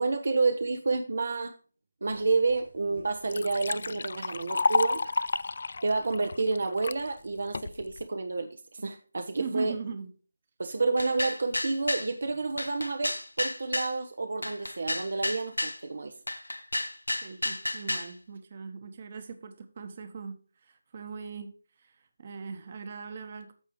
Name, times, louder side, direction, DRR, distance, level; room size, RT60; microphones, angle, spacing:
voice 1, 0.0-1.5 2.0-5.1 5.8-9.7 10.6-16.1, right 3 dB, 60° right, 6 dB, 1.0 m, -29 dB
Liquid, 2.5-2.6 3.0-7.0 7.5-8.0, left 3 dB, 55° left, 0.3 m, -30 dB
voice 2, 9.4-10.1 17.2-21.9 22.2-23.5, right 5 dB, 40° right, 8 dB, 1.3 m, -40 dB
sound 1, 11.0-12.1 12.6-13.9 14.4-15.8 16.3-18.1, left 1 dB, 85° left, 1.0 m, -32 dB
14.0 x 4.8 x 3.1 m, 0.37 s
figure-of-eight pair, 155°, 0 cm